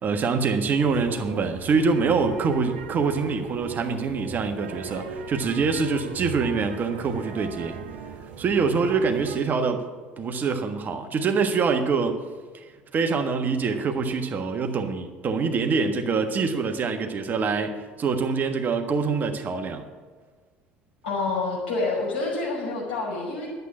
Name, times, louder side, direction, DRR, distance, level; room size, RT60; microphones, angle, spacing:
voice 1, 0.0-7.8 8.4-9.8 10.2-12.2 12.9-19.8, right 5 dB, 35° right, 6 dB, 1.4 m, -25 dB
sound 1, 0.8-9.4, right 6 dB, 65° right, 1.3 m, -38 dB
voice 2, 21.0-23.5, left 3 dB, 75° left, -4 dB, 5.3 m, -27 dB
12.0 x 8.0 x 8.6 m, 1.5 s
figure-of-eight pair, 60°, 5 cm